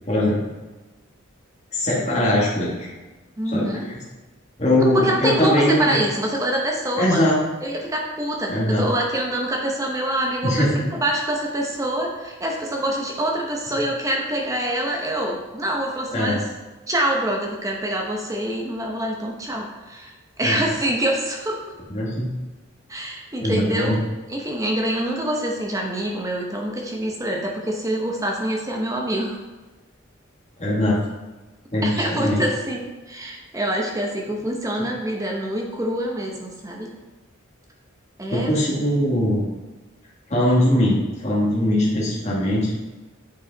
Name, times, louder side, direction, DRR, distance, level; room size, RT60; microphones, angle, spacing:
voice 1, 1.7-2.9 3.5-3.9 4.6-6.0 7.0-7.4 8.5-8.8 10.4-10.9 16.1-16.4 20.4-20.6 21.9-22.3 23.4-24.0 30.6-31.0 31.7-32.4 38.3-39.4 40.3-42.7, left 1 dB, 30° left, -6 dB, 1.5 m, -21 dB
voice 2, 3.4-3.9 4.9-7.3 7.6-16.4 16.9-20.1 20.4-21.6 22.9-24.0 24.3-29.4 31.8-36.9 38.2-38.5, right 1 dB, 15° right, 0 dB, 0.8 m, -25 dB
8.2 x 4.7 x 3.9 m, 1.2 s
head